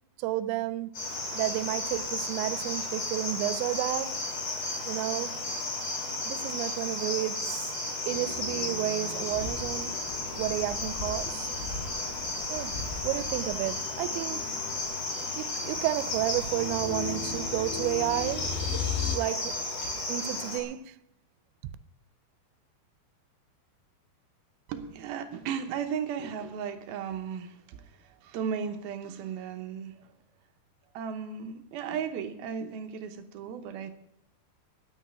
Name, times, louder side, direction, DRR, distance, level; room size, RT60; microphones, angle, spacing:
voice 1, 0.2-0.9 1.3-4.2 4.9-5.3 6.3-7.8 8.1-10.0 10.4-11.5 12.5-12.8 13.0-14.4 15.4-18.7 19.1-19.6 20.1-21.0, right 15 dB, 90° right, 2.9 m, -31 dB
Cricket, 0.9-20.6, left 2 dB, 45° left, 3.3 m, -34 dB
sound 1, 8.1-19.2, left 8 dB, 85° left, 3.1 m, -39 dB
sound 2, 9.3-14.8, left 3 dB, 65° left, 3.1 m, -42 dB
voice 2, 24.7-30.1 30.9-33.9, right 7 dB, 75° right, 2.5 m, -35 dB
9.7 x 9.0 x 9.4 m
omnidirectional pair, 5.0 m